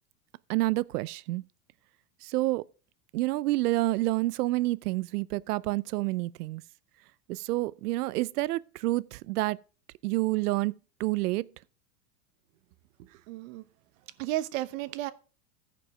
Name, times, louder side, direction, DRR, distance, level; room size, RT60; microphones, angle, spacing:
voice 1, 0.5-1.4 2.2-2.7 3.1-6.6 7.3-9.6 10.0-10.7 11.0-11.5, right 19 dB, 85° right, 0.6 m, -28 dB
voice 2, 13.0-13.6 14.2-15.1, right 15 dB, 60° right, 1.0 m, -33 dB
14.5 x 5.2 x 4.9 m
supercardioid pair, 145°, 44 cm